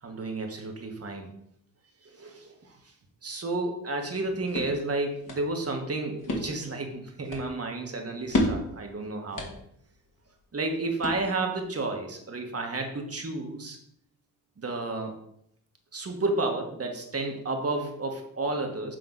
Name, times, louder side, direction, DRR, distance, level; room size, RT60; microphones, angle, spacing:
voice 1, 0.0-1.3 2.0-2.9 3.2-9.5 10.5-13.8 14.6-15.1 15.9-19.0, right 2 dB, 35° right, 3 dB, 1.6 m, -31 dB
sound 1, 4.1-11.6, left 1 dB, 50° left, 2.2 m, -35 dB
7.9 x 3.7 x 4.0 m, 0.72 s
hypercardioid pair, 50°, 41 cm